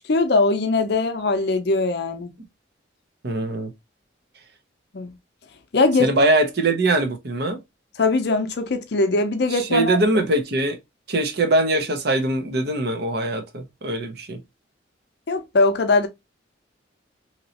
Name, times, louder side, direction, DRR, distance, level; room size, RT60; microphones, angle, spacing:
voice 1, 0.0-2.3 4.9-5.1 5.7-6.1 8.0-10.0 15.3-16.1, left 3 dB, 55° left, 0.5 m, -21 dB
voice 2, 3.2-3.7 6.0-7.6 9.5-10.8 11.1-14.4, right 2 dB, 55° right, 0.7 m, -22 dB
3.0 x 2.8 x 2.8 m
head